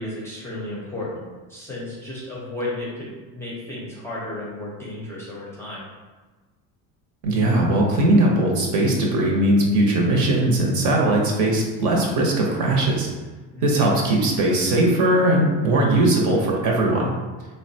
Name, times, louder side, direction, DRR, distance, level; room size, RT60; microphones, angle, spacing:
voice 1, 0.0-5.8 13.5-13.8, left 1 dB, 5° left, -6 dB, 0.5 m, -33 dB
voice 2, 7.2-13.1 13.6-17.1, right 1 dB, 50° right, -1 dB, 0.8 m, -19 dB
3.8 x 2.2 x 2.7 m, 1.3 s
cardioid pair, 135°, 38 cm